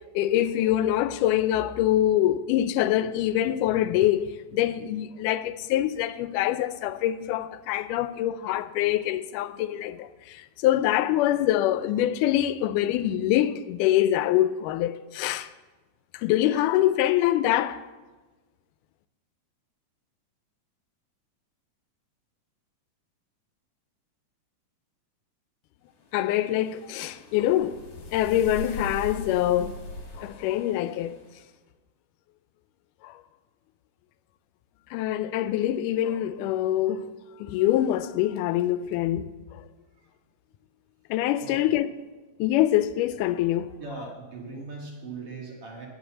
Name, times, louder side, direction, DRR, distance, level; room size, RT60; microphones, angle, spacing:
voice 1, 0.2-15.5 16.1-17.9 26.1-27.9 28.1-29.7 30.2-31.2 33.0-33.2 34.9-37.1 37.4-39.6 41.1-41.9 42.4-43.7, left 13 dB, 90° left, 2.1 m, -25 dB
sound 1, 26.1-31.4, left 2 dB, 45° left, 1.9 m, -41 dB
voice 2, 43.8-45.9, right 4 dB, 50° right, 2.6 m, -39 dB
10.5 x 6.8 x 8.1 m
omnidirectional pair, 3.6 m